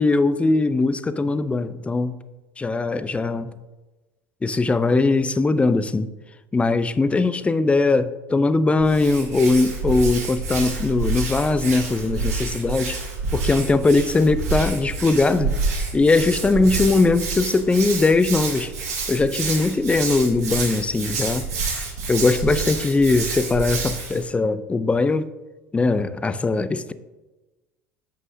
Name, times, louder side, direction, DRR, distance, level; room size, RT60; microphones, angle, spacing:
voice 1, 0.0-2.2 2.6-3.5 4.4-6.1 6.5-13.0 13.3-15.6 15.9-18.7 19.1-21.5 22.1-25.3 25.7-26.9, left 3 dB, 15° left, 0.5 m, -20 dB
Hands, 8.8-24.2, right 3 dB, 80° right, 2.4 m, -28 dB
14.0 x 5.4 x 2.7 m
figure-of-eight pair, 65°, 8 cm